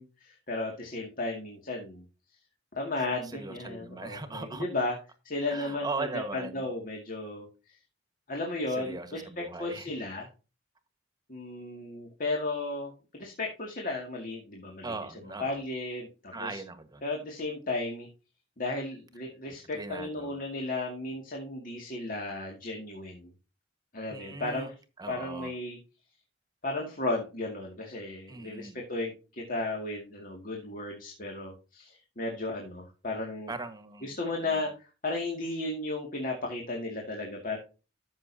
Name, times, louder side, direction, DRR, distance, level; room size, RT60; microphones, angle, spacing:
voice 1, 0.0-2.0 2.8-5.0 5.2-6.1 6.3-7.5 8.3-10.3 11.3-14.9 15.4-16.6 17.0-18.1 18.6-23.3 23.9-24.7 25.1-25.8 26.6-33.5 34.0-37.6, left 2 dB, 45° left, 2.2 m, -34 dB
voice 2, 3.2-4.7 5.5-6.7 8.7-9.9 14.8-15.6 16.3-17.0 19.7-20.4 24.1-24.7 25.0-25.5 28.3-28.8 33.5-34.6, right 3 dB, 20° right, 1.4 m, -39 dB
13.5 x 6.6 x 2.8 m
head